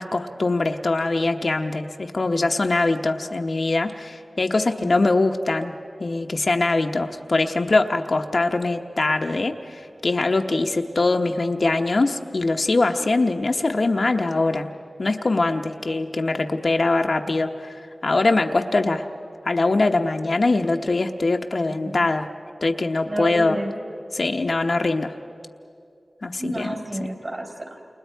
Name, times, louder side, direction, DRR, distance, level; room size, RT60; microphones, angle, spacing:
voice 1, 0.0-5.7 6.0-14.7 15.0-17.7 18.0-19.0 19.4-22.3 22.6-23.6 24.1-25.1 26.2-26.7, left 2 dB, 65° left, 4 dB, 0.9 m, -22 dB
voice 2, 23.0-23.7 26.3-27.8, right 1 dB, 45° right, 1 dB, 4.2 m, -30 dB
29.5 x 28.5 x 4.6 m, 2.6 s
cardioid pair, 45°, 0 cm